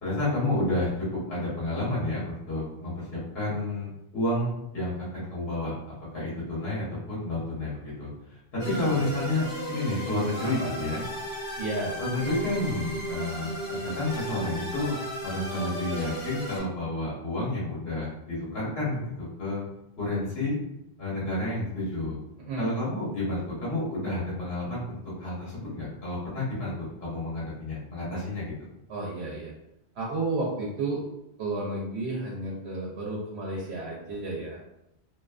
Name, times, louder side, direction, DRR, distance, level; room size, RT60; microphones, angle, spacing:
voice 1, 0.0-2.9 3.3-5.7 6.1-11.0 12.0-13.5 13.8-19.6 20.0-20.6 21.0-22.2 22.6-28.5, left 2 dB, 70° left, -7 dB, 1.1 m, -30 dB
sound 1, 8.6-16.6, equal, 50° left, 0.9 m, -35 dB
voice 2, 8.7-9.1 10.6-10.7 11.6-12.0 22.4-22.7 28.9-29.5 29.9-31.0 31.4-34.6, right 2 dB, 85° right, -4 dB, 0.8 m, -32 dB
2.5 x 2.4 x 2.2 m, 0.85 s
omnidirectional pair, 1.1 m